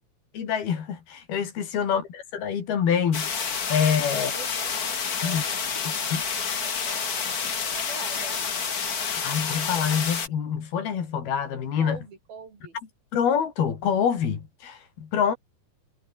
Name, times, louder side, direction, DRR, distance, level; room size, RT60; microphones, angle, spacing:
voice 1, 0.3-4.3 5.2-5.4 6.1-6.2 9.2-12.0 13.1-15.4, left 7 dB, 75° left, 5.2 m, -26 dB
sound 1, 3.1-10.3, left 6 dB, 50° left, 1.1 m, -29 dB
voice 2, 4.1-5.7 6.0-8.5 11.8-12.8 15.2-15.4, right 5 dB, 70° right, 6.5 m, -44 dB
omnidirectional pair, 4.5 m